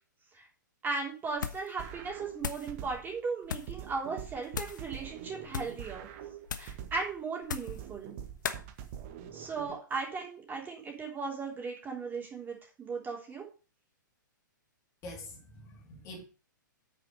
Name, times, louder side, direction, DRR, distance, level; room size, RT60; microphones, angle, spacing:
voice 1, 0.8-6.1 6.6-8.1 9.3-13.5, right 4 dB, 15° right, 3.6 m, -37 dB
sound 1, 1.3-1.7 2.0-2.7 3.4-3.8 4.5-4.9 5.4-5.8 6.5-6.8 7.4-7.8 8.4-8.6, left 7 dB, 65° left, 1.2 m, -38 dB
sound 2, 1.8-3.2 3.7-7.2 7.7-9.8, right 9 dB, 40° right, 1.5 m, -45 dB
voice 2, 15.0-16.2, left 1 dB, 30° left, 3.3 m, -45 dB
8.8 x 6.5 x 5.4 m
figure-of-eight pair, 115°, 11 cm